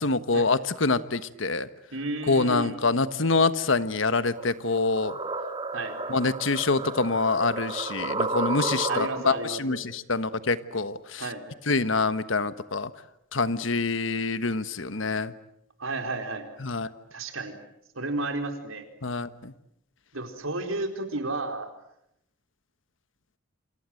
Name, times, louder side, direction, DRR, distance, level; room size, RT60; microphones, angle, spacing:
voice 1, 0.0-1.7 2.3-5.1 6.1-11.3 11.7-12.9 13.3-15.3 16.6-16.9 19.0-19.5, left 3 dB, 70° left, 13 dB, 1.3 m, -26 dB
voice 2, 1.9-2.7 5.7-6.0 8.9-9.8 11.2-11.4 15.8-16.5 17.1-17.6 18.0-18.9 20.1-21.7, right 2 dB, 85° right, 6 dB, 4.3 m, -32 dB
sound 1, 4.4-9.4, right 3 dB, 25° right, 2.3 m, -32 dB
28.5 x 27.0 x 7.8 m, 0.76 s
head